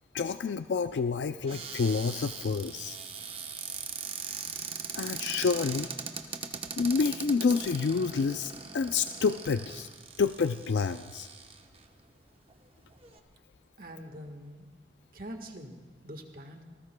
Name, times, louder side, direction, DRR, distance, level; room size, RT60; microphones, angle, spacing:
voice 1, 0.1-3.0 4.9-5.9 6.8-9.9 10.2-11.3, left 5 dB, 80° left, 10 dB, 0.4 m, -28 dB
Cupboard open or close, 1.5-11.8 12.5-12.6 12.8-13.2, right 6 dB, 30° right, 0.9 m, -40 dB
voice 2, 13.8-14.7 15.1-16.6, equal, 55° right, 5 dB, 1.4 m, -44 dB
27.0 x 19.0 x 2.2 m, 1.3 s
head